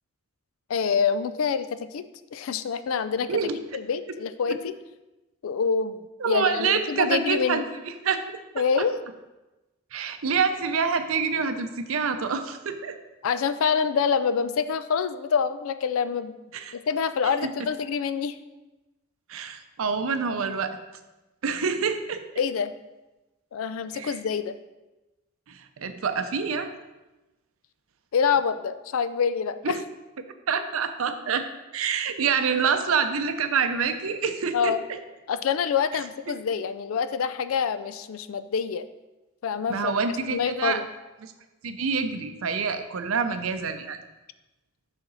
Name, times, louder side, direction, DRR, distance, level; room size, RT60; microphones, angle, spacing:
voice 1, 0.7-2.0 2.3-3.3 3.7-4.7 5.4-7.6 8.6-9.0 13.2-16.3 16.7-18.4 22.4-22.7 23.5-24.6 28.1-29.8 34.5-34.8 35.3-38.9 39.4-39.9 40.3-40.8, left 6 dB, 80° left, 12 dB, 0.4 m, -26 dB
voice 2, 6.2-7.6 8.0-8.2 8.6-8.9 9.9-13.0 16.5-16.7 19.3-20.8 21.4-22.2 23.9-24.2 25.5-26.7 29.6-29.8 30.5-31.4 31.7-35.0 39.7-40.8 41.2-41.3 41.6-44.0, right 5 dB, 85° right, 8 dB, 0.6 m, -26 dB
6.9 x 5.8 x 3.9 m, 1.1 s
head